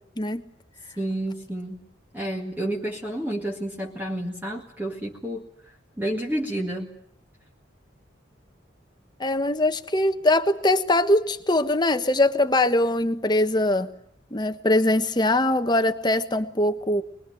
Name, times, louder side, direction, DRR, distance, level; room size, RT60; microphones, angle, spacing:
voice 1, 1.0-1.8 2.1-6.9, right 1 dB, 10° right, -1 dB, 2.1 m, -30 dB
voice 2, 9.2-13.9 14.3-17.0, left 1 dB, 25° left, 9 dB, 1.3 m, -22 dB
24.0 x 21.0 x 9.2 m, 0.67 s
head